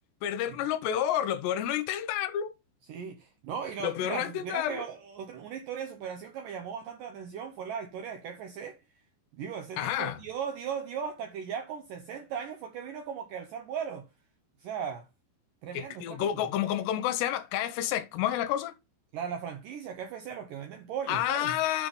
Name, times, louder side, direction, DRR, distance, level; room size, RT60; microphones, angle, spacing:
voice 1, 0.2-2.5 3.8-4.8 9.8-10.2 15.7-18.7 21.1-21.9, left 11 dB, 80° left, 2.8 m, -29 dB
voice 2, 2.9-8.8 9.3-14.1 14.6-15.1 15.6-16.5 19.1-21.6, right 7 dB, 80° right, 1.9 m, -38 dB
7.0 x 5.1 x 5.3 m
omnidirectional pair, 5.1 m